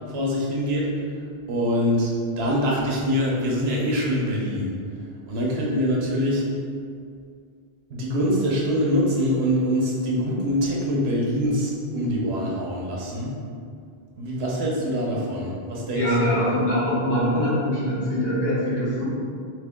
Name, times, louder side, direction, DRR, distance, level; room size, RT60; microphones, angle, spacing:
voice 1, 0.1-0.9 1.5-2.1 2.4-4.7 5.3-6.4 7.9-13.3 14.2-16.4, equal, 80° right, -3 dB, 1.0 m, -24 dB
voice 2, 15.9-19.0, equal, 70° left, -7 dB, 1.4 m, -23 dB
3.4 x 3.0 x 3.6 m, 2.2 s
omnidirectional pair, 1.0 m